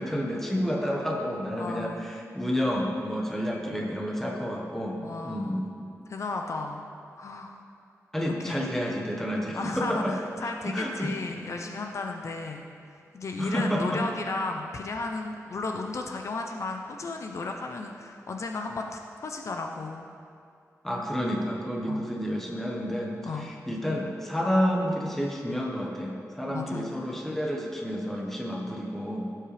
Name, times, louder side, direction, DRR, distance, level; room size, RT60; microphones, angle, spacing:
voice 1, 0.0-5.7 8.1-10.1 10.4-11.1 13.4-14.0 20.8-29.3, equal, 5° left, -2 dB, 1.2 m, -30 dB
voice 2, 1.6-2.1 5.0-5.6 6.1-6.8 7.1-7.6 8.2-8.6 9.5-12.6 13.1-20.0 21.8-22.0 23.2-23.5 26.5-26.9, left 3 dB, 55° left, 3 dB, 0.6 m, -34 dB
16.5 x 7.6 x 3.4 m, 2.4 s
wide cardioid pair, 175°, 6 cm